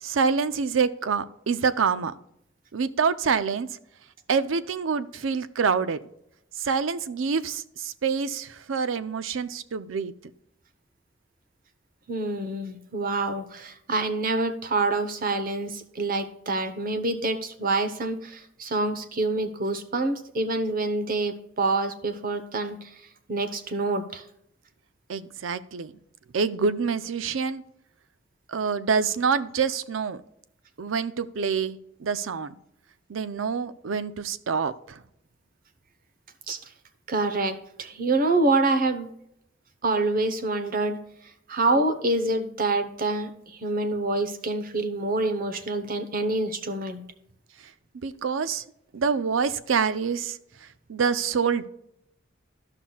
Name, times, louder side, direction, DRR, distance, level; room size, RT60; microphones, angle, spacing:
voice 1, 0.0-2.1 2.7-3.7 4.3-6.0 6.6-10.1 25.1-25.9 26.3-27.6 28.5-30.2 30.8-32.6 33.1-35.0 48.0-48.6 48.9-51.7, right 5 dB, 90° right, 13 dB, 0.5 m, -26 dB
voice 2, 12.1-23.0 23.3-24.2 36.5-36.6 37.1-39.1 39.8-41.0 41.5-47.0, right 2 dB, 45° right, 9 dB, 0.9 m, -26 dB
14.0 x 5.8 x 2.3 m, 0.77 s
head